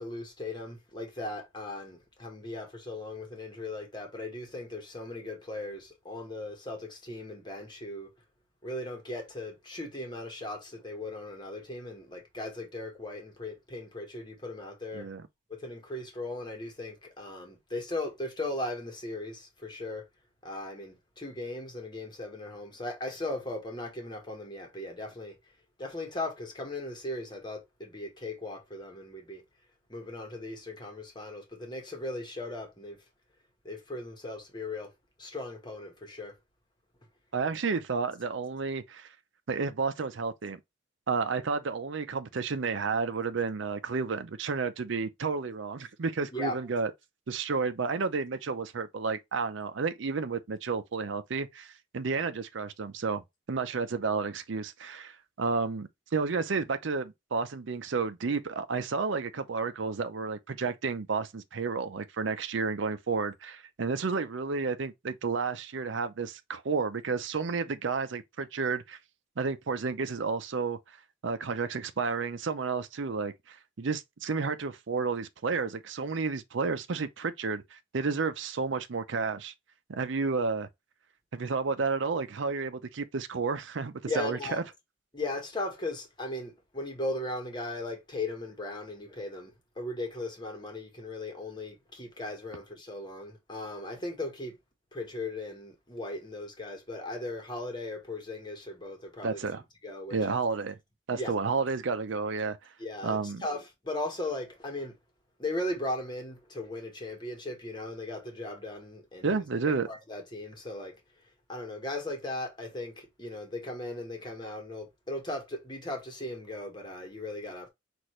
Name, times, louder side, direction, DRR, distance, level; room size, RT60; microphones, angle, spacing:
voice 1, 0.0-8.1 8.6-15.1 15.5-20.0 20.4-25.4 25.8-29.4 29.9-33.0 33.6-34.9 35.2-36.4 46.3-46.6 84.1-84.6 85.1-94.6 94.9-99.5 99.8-100.2 101.1-101.3 102.8-104.9 105.4-111.0 111.5-117.7, left 2 dB, 20° left, 1.2 m, -38 dB
voice 2, 37.3-39.1 39.5-40.6 41.1-46.9 47.3-53.2 53.5-69.0 69.4-70.8 71.2-79.5 79.9-80.7 81.3-84.6 99.2-99.6 100.1-100.8 101.1-102.6 103.0-103.4 109.2-109.9, right 4 dB, 70° right, 0.5 m, -31 dB
6.1 x 2.5 x 3.1 m
head